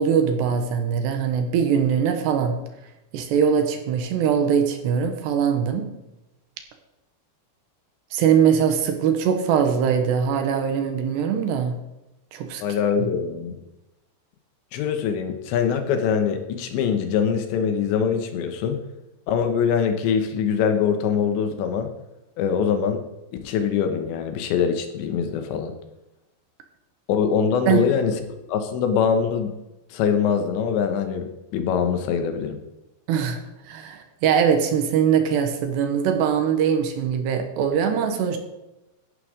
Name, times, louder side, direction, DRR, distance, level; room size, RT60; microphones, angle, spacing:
voice 1, 0.0-2.6 3.1-5.9 8.1-11.8 12.3-12.6 13.0-13.1 27.7-27.9 33.1-33.4 33.7-38.4, right 7 dB, 75° right, 6 dB, 3.1 m, -22 dB
voice 2, 12.6-13.6 14.7-18.8 19.3-21.9 22.4-23.0 23.4-25.7 27.1-28.2 28.5-29.5 29.9-32.6, left 7 dB, 85° left, 7 dB, 3.4 m, -23 dB
14.0 x 11.5 x 3.8 m, 0.95 s
omnidirectional pair, 5.1 m